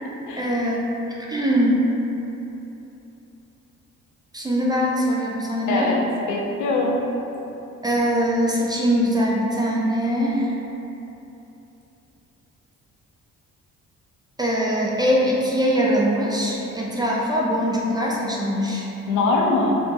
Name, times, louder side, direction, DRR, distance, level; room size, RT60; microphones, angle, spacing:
voice 1, 0.4-0.9 1.3-1.9 4.3-5.9 7.8-10.5 14.4-18.9, equal, 15° right, -4 dB, 0.3 m, -22 dB
voice 2, 5.7-6.0 6.3-7.1 19.1-19.7, left 3 dB, 75° left, -1 dB, 0.5 m, -22 dB
3.3 x 2.1 x 2.8 m, 3.0 s
cardioid pair, 90°, 30 cm